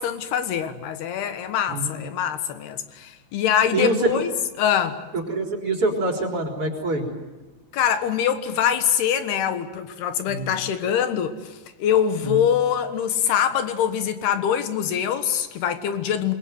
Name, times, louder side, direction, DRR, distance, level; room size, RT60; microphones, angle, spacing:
voice 1, 0.0-4.3 4.6-5.0 7.7-16.3, left 9 dB, 80° left, 3.5 m, -24 dB
voice 2, 5.3-7.0 10.3-10.5 12.2-12.4, right 2 dB, 35° right, 4.4 m, -25 dB
28.0 x 21.5 x 9.3 m
omnidirectional pair, 4.6 m